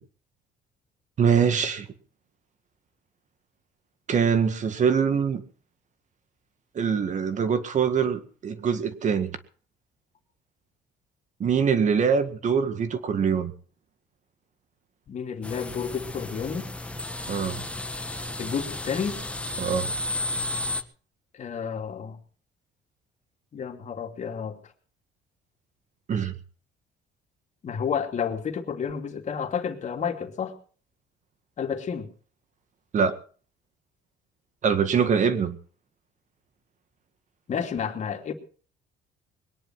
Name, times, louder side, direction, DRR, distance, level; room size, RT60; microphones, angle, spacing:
voice 1, 1.2-1.9 4.1-5.4 6.8-9.4 11.4-13.5 17.3-17.6 19.6-19.9 26.1-26.4 32.9-33.2 34.6-35.6, right 6 dB, 45° right, 11 dB, 1.9 m, -23 dB
voice 2, 15.1-16.7 18.4-19.2 21.3-22.2 23.5-24.6 27.6-30.6 31.6-32.1 37.5-38.3, left 7 dB, 45° left, 5 dB, 2.8 m, -30 dB
sound 1, 15.4-20.8, left 2 dB, 5° left, 1.5 m, -33 dB
21.5 x 10.5 x 6.0 m, 0.42 s
cardioid pair, 110°, 17 cm